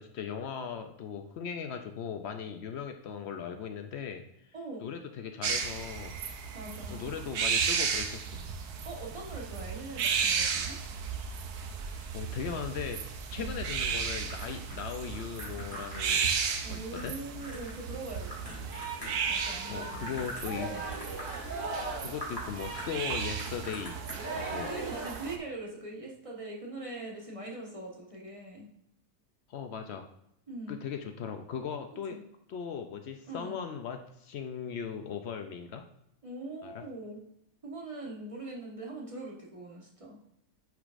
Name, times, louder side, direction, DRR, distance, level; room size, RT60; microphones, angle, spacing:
voice 1, 0.0-4.2 4.8-6.1 6.9-8.4 11.9-13.0 13.3-16.3 16.7-17.1 18.6-18.7 19.7-20.8 22.0-24.0 24.3-24.7 29.5-30.1 30.7-32.2 32.5-35.9 36.6-36.8, left 7 dB, 70° left, 6 dB, 0.6 m, -38 dB
voice 2, 4.5-4.9 6.5-7.1 8.8-10.8 13.4-13.6 16.6-18.6 19.3-20.3 20.7-20.8 24.3-28.7 30.5-30.8 32.1-32.2 33.3-33.6 36.2-37.2 37.6-40.2, right 2 dB, 25° right, -3 dB, 1.2 m, -42 dB
sound 1, 5.4-25.4, right 6 dB, 85° right, 1.3 m, -34 dB
sound 2, 13.8-19.4 19.7-20.5 20.8-21.4 21.8-21.9 22.2-22.4 22.7-24.1, equal, 15° left, 2.4 m, -44 dB
Singing, 18.2-25.1, right 3 dB, 50° right, 2.7 m, -40 dB
9.3 x 4.9 x 2.5 m, 0.75 s
omnidirectional pair, 1.6 m